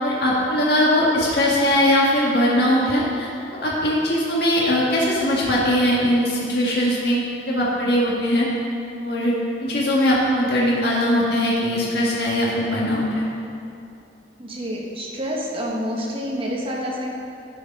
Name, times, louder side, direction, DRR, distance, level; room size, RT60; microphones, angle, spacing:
voice 1, 0.0-3.3 3.6-7.2 7.4-8.5 9.0-9.3 9.6-13.2, left 1 dB, 60° left, -5 dB, 1.6 m, -20 dB
voice 2, 14.4-17.1, equal, 30° right, -2 dB, 1.3 m, -28 dB
11.5 x 6.6 x 5.3 m, 2.6 s
head